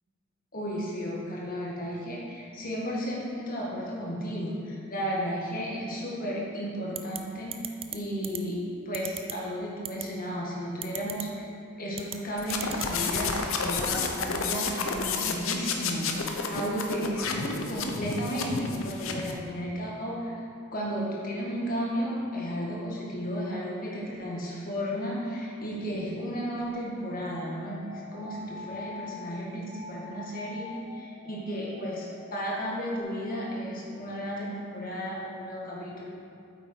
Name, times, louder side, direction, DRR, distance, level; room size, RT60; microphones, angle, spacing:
voice 1, 0.5-8.6 8.9-11.5 11.8-20.4 20.7-36.1, equal, 40° left, -4 dB, 1.9 m, -33 dB
sound 1, 6.9-7.2 7.5-8.0 8.2-8.4 8.9-9.3 9.8-10.0 10.8-11.2 11.9-12.2 12.5-12.9, right 10 dB, 25° right, 0.4 m, -35 dB
sound 2, 12.4-19.4, left 4 dB, 65° left, 0.8 m, -31 dB
sound 3, 26.9-29.1 29.7-33.0, left 2 dB, 45° right, 2.0 m, -45 dB
8.7 x 8.0 x 4.6 m, 2.7 s
head